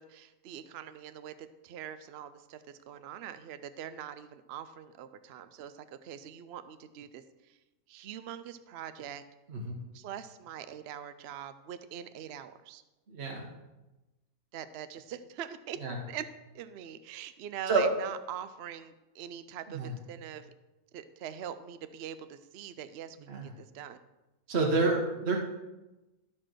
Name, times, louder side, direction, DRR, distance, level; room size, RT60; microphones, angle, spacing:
voice 1, 0.0-7.6 7.9-9.2 9.9-12.8 14.5-15.8 16.1-16.2 16.5-20.5 20.9-24.0, right 9 dB, 65° right, 12 dB, 0.6 m, -43 dB
voice 2, 9.5-9.8 13.1-13.5 15.8-16.0 17.7-17.8 19.7-19.9 23.3-23.5 24.5-25.4, right 3 dB, 50° right, 0 dB, 1.3 m, -29 dB
12.5 x 4.4 x 6.2 m, 1.0 s
omnidirectional pair, 1.6 m